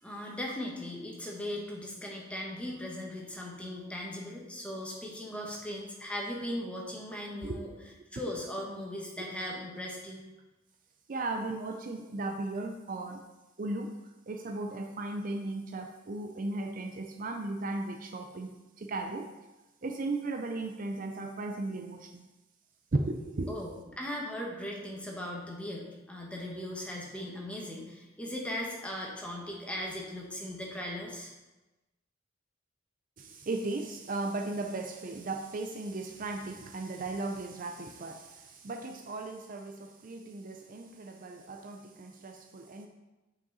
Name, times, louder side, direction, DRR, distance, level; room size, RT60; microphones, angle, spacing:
voice 1, 0.0-7.7 8.1-10.2 23.5-31.3, left 1 dB, 5° left, -2 dB, 1.2 m, -38 dB
voice 2, 11.1-13.2 13.6-13.9 14.3-19.3 19.8-22.3 22.9-23.6 33.2-42.9, right 2 dB, 45° right, 4 dB, 0.5 m, -36 dB
7.7 x 5.6 x 4.0 m, 1.1 s
head